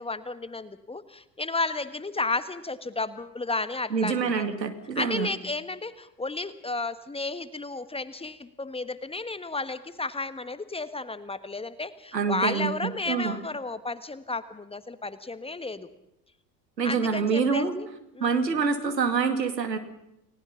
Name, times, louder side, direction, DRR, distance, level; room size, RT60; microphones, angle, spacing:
voice 1, 0.0-4.5 5.0-15.9 16.8-17.9 18.2-18.4, left 3 dB, 10° left, 12 dB, 1.4 m, -33 dB
voice 2, 3.9-5.3 12.1-13.4 16.8-17.7 18.2-19.8, right 5 dB, 80° right, 8 dB, 2.4 m, -26 dB
29.5 x 18.5 x 5.8 m, 0.83 s
figure-of-eight pair, 65°, 49 cm